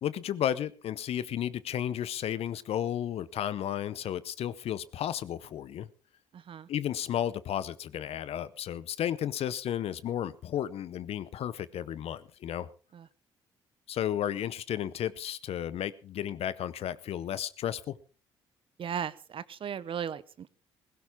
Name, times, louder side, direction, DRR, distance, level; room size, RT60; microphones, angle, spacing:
voice 1, 0.0-5.9 6.7-12.7 13.9-18.0, left 10 dB, 60° left, 18 dB, 0.8 m, -33 dB
voice 2, 6.3-6.7 12.9-13.1 18.8-20.5, right 8 dB, 50° right, 18 dB, 0.9 m, -36 dB
16.5 x 16.0 x 3.7 m, 0.36 s
supercardioid pair, 60°, 11 cm